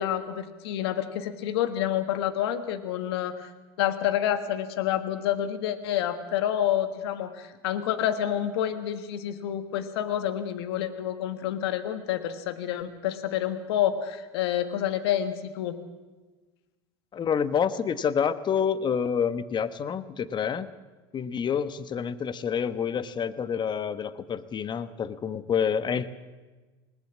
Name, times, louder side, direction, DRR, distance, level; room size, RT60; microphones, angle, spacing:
voice 1, 0.0-3.5 3.8-15.8, left 11 dB, 80° left, 10 dB, 1.5 m, -28 dB
voice 2, 17.1-20.7 21.1-26.1, left 7 dB, 35° left, 14 dB, 1.2 m, -28 dB
20.0 x 18.5 x 7.4 m, 1.3 s
hypercardioid pair, 90°, 13 cm